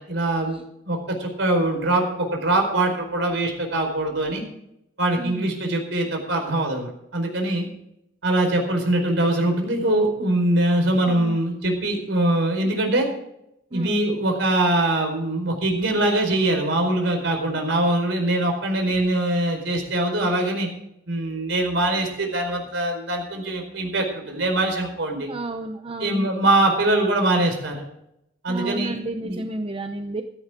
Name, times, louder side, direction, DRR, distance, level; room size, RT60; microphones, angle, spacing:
voice 1, 0.1-0.6 0.9-4.4 5.0-7.7 8.2-13.1 13.7-20.7 21.1-25.3 26.0-27.8 28.4-29.4, right 1 dB, 65° right, 3 dB, 4.7 m, -23 dB
voice 2, 11.1-11.4 13.7-14.0 25.3-26.3 28.5-30.2, right 2 dB, 30° right, 6 dB, 0.8 m, -31 dB
15.5 x 13.5 x 3.8 m, 0.79 s
head